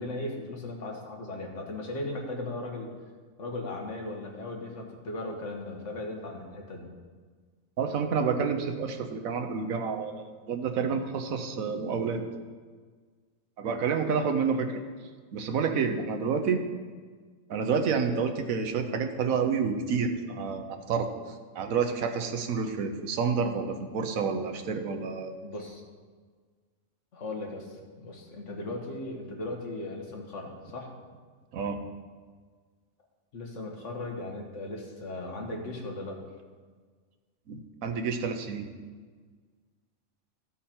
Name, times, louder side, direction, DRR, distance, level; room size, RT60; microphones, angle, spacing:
voice 1, 0.0-2.9 3.4-6.9 25.4-25.8 27.1-30.9 33.3-36.2, left 2 dB, 65° left, 0 dB, 1.6 m, -37 dB
voice 2, 7.8-12.2 13.6-14.8 15.3-16.6 17.5-21.1 21.5-25.3 31.5-31.8 37.5-38.7, right 5 dB, 85° right, 6 dB, 1.3 m, -29 dB
13.5 x 5.6 x 4.3 m, 1.5 s
omnidirectional pair, 1.4 m